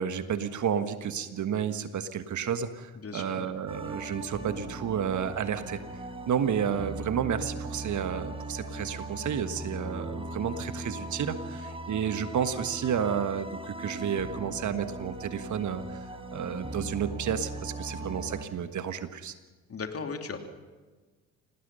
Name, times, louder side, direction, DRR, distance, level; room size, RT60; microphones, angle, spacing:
voice 1, 0.0-19.3, right 8 dB, 50° right, 11 dB, 1.5 m, -31 dB
voice 2, 3.0-3.5 19.7-20.4, left 5 dB, 35° left, 5 dB, 2.9 m, -36 dB
sound 1, 3.7-18.5, right 1 dB, 15° right, 4.0 m, -39 dB
26.5 x 18.5 x 5.5 m, 1.3 s
hypercardioid pair, 50°, 39 cm